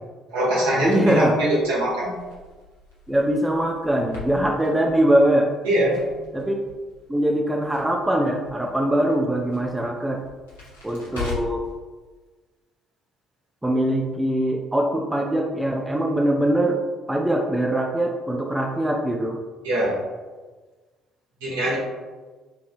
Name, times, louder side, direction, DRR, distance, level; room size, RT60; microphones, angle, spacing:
voice 1, 0.3-2.2 5.6-6.0 19.6-20.0 21.4-21.8, right 1 dB, 70° right, -7 dB, 1.1 m, -22 dB
Crackle, 0.8-11.7, left 4 dB, 75° left, 0.7 m, -41 dB
voice 2, 0.8-1.3 3.1-5.5 6.3-6.5 7.1-10.2 10.8-11.7 13.6-16.8 17.1-19.4, right 1 dB, 10° right, 1 dB, 0.4 m, -22 dB
3.9 x 2.7 x 2.5 m, 1.3 s
figure-of-eight pair, 50°, 0 cm